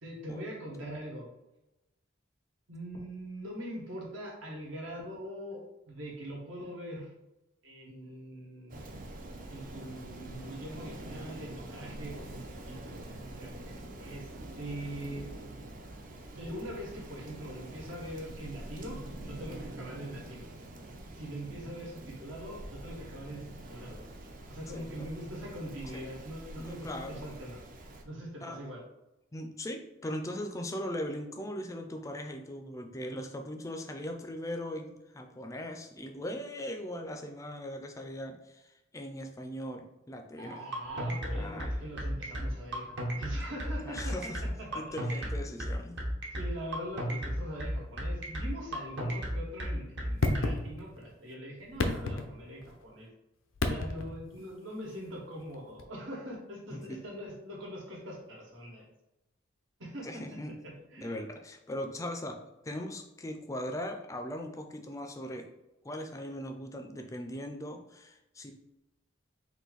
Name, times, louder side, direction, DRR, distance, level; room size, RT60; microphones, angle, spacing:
voice 1, 0.0-1.3 2.7-7.1 7.6-8.9 9.5-13.0 13.4-14.3 14.6-15.3 16.4-19.0 19.2-20.5 21.1-24.1 24.5-27.6 28.0-28.8 40.4-44.3 44.6-44.8 45.1-45.3 46.3-53.1 53.7-58.8 59.8-60.4 60.6-61.2, equal, 80° right, -2 dB, 1.4 m, -42 dB
Rain, 8.7-28.0, right 1 dB, 45° right, 0.5 m, -45 dB
voice 2, 24.7-25.1 25.9-26.1 26.5-27.3 28.4-28.6 29.3-40.6 41.3-41.7 43.8-44.4 44.8-46.0 56.7-57.0 60.0-60.5 61.0-62.4 62.6-65.5 65.8-68.5, left 1 dB, 15° left, 4 dB, 0.4 m, -39 dB
sound 1, 40.7-50.5, equal, 60° right, 1.0 m, -33 dB
sound 2, 50.2-51.1 51.6-52.8 53.6-54.3 55.8-55.9, left 2 dB, 85° left, 0.5 m, -31 dB
4.0 x 2.6 x 3.9 m, 0.96 s
head